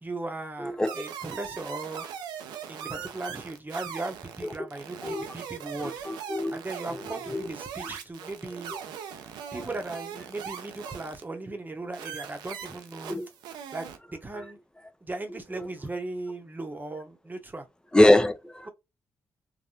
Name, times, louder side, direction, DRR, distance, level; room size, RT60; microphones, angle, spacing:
voice 1, 0.0-2.0 2.7-5.9 6.5-8.7 9.5-13.2 13.7-13.9 14.1-14.6 15.0-17.7 18.6-18.7, right 2 dB, 25° right, 0.9 m, -37 dB
voice 2, 0.6-0.9 2.9-3.0 5.0-5.3 6.1-6.6 7.3-7.5 13.1-13.2 17.9-18.7, left 1 dB, 10° left, 0.6 m, -22 dB
sound 1, 0.8-11.2 11.9-14.0, right 8 dB, 85° right, 0.5 m, -40 dB
3.4 x 2.2 x 2.7 m
supercardioid pair, 50°, 7 cm